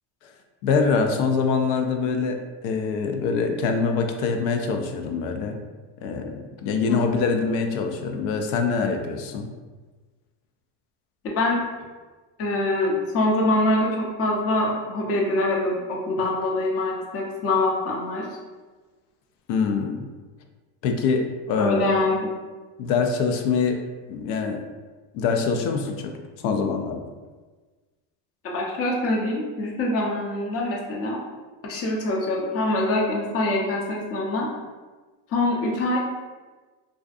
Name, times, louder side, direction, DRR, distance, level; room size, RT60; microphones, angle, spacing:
voice 1, 0.6-2.4 2.6-5.6 6.0-9.5 19.5-20.0 20.8-22.0 22.8-23.8 24.1-24.6 25.1-26.1 26.4-27.0, left 5 dB, 85° left, 4 dB, 0.5 m, -24 dB
voice 2, 11.2-11.6 12.4-18.3 21.6-22.3 28.4-31.2 31.6-34.5 35.3-36.0, left 2 dB, 30° left, -1 dB, 0.5 m, -24 dB
2.5 x 2.4 x 2.4 m, 1.3 s
supercardioid pair, 105°, 48 cm